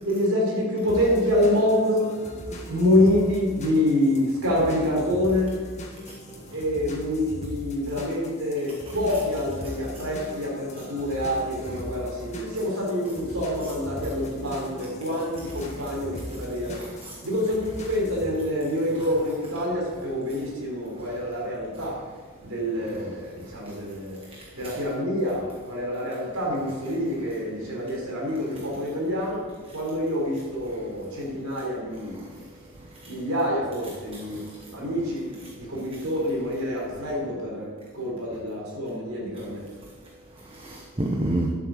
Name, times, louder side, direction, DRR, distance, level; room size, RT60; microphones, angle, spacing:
voice 1, 0.0-2.1 2.7-5.5 6.5-16.7 17.2-21.9 22.4-24.2 24.6-29.4 29.7-32.2 33.1-34.4 34.7-35.3 35.6-37.7 37.9-39.6, left 1 dB, 80° right, -3 dB, 4.2 m, -26 dB
sound 1, 0.9-18.3, left 1 dB, 30° left, 1.6 m, -40 dB
voice 2, 16.7-17.1 24.4-24.5 33.0-33.1 34.3-34.6 40.4-41.5, right 1 dB, 25° right, 1 dB, 1.0 m, -30 dB
12.0 x 7.8 x 6.7 m, 1.5 s
head